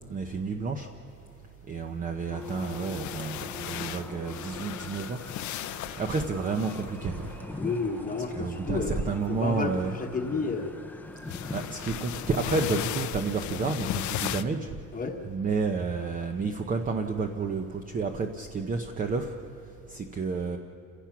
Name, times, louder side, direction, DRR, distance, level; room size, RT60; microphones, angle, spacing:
voice 1, 0.1-0.9 1.7-5.2 5.8-7.3 8.3-9.9 11.5-14.7 15.2-19.3 19.9-20.6, right 4 dB, 25° right, 5 dB, 0.8 m, -30 dB
sound 1, 2.3-7.3 9.1-9.4 11.3-14.4, left 13 dB, 65° left, 0.7 m, -36 dB
sound 2, 2.3-13.0, left 3 dB, 5° left, 0.6 m, -43 dB
voice 2, 2.6-3.1 7.6-10.8 14.9-15.2, left 4 dB, 25° left, 2 dB, 1.2 m, -32 dB
sound 3, 3.1-9.1, right 2 dB, 70° right, 5.6 m, -52 dB
29.0 x 16.5 x 5.9 m, 2.7 s
cardioid pair, 170°, 31 cm